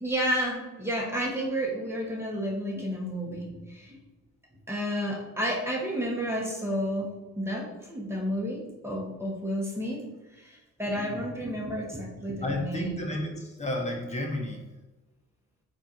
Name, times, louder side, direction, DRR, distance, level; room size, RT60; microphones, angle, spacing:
voice 1, 0.0-4.0 4.7-7.1 7.4-10.0 10.4-12.9, equal, 10° right, -2 dB, 1.4 m, -31 dB
voice 2, 12.4-14.6, left 1 dB, 25° left, 1 dB, 1.0 m, -31 dB
4.3 x 2.7 x 4.5 m, 1.1 s
cardioid pair, 90°, 30 cm